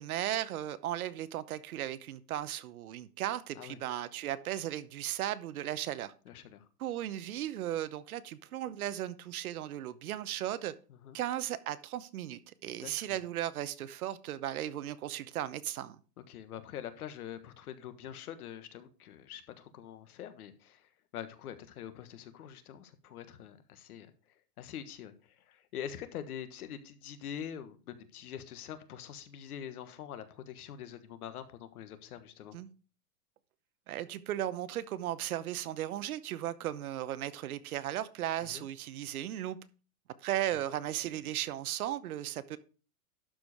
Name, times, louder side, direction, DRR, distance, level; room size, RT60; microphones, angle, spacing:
voice 1, 0.0-6.1 6.8-10.7 11.1-16.0 32.5-32.7 33.9-39.6 40.2-42.6, right 12 dB, 60° right, 0.9 m, -36 dB
voice 2, 6.2-6.7 10.9-11.2 12.8-13.2 16.3-32.6 38.4-38.7, left 9 dB, 65° left, 1.5 m, -45 dB
12.0 x 5.0 x 4.9 m
supercardioid pair, 165°, 48 cm